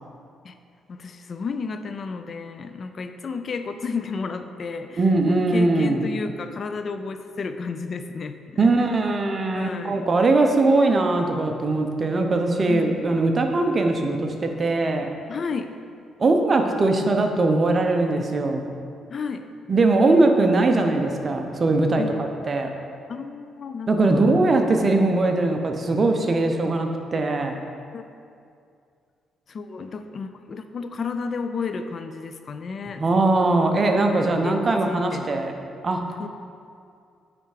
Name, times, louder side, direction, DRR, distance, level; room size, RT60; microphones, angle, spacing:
voice 1, 0.9-8.7 9.5-10.1 12.7-13.0 15.3-15.8 19.1-19.5 22.0-22.1 23.1-24.3 27.9-28.0 29.5-33.0 34.4-35.3 36.2-36.3, left 5 dB, 50° left, 8 dB, 0.4 m, -32 dB
voice 2, 5.0-6.0 8.6-15.1 16.2-18.6 19.7-22.0 22.5-22.7 23.9-27.6 33.0-35.5 35.8-36.0, right 2 dB, 35° right, 4 dB, 0.7 m, -21 dB
8.5 x 3.4 x 4.9 m, 2.4 s
cardioid pair, 90°, 0 cm